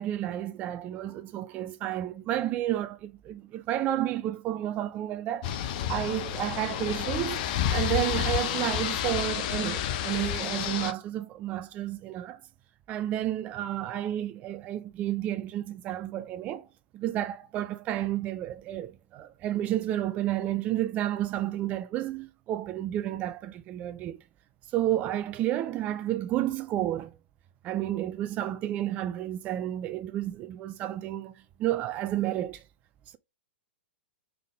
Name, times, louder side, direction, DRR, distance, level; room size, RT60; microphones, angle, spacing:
voice 1, 0.0-5.5 5.9-7.4 7.7-12.4 12.9-16.7 16.9-24.2 24.7-27.1 27.6-32.6, right 13 dB, 25° right, 0.3 m, -31 dB
sound 1, 5.4-10.9, left 10 dB, 40° left, 0.6 m, -30 dB
3.7 x 3.5 x 3.5 m
figure-of-eight pair, 110°, 6 cm